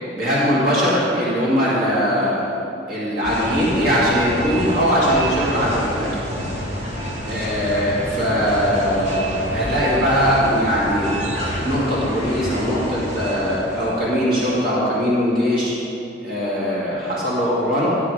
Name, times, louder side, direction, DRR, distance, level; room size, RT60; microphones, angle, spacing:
voice 1, 0.1-2.4 2.9-6.1 7.2-11.1 11.6-15.7 16.2-17.9, equal, 55° right, -8 dB, 2.3 m, -20 dB
sound 1, 3.2-14.0, equal, 80° right, 2.9 m, -28 dB
12.0 x 8.4 x 5.0 m, 2.9 s
head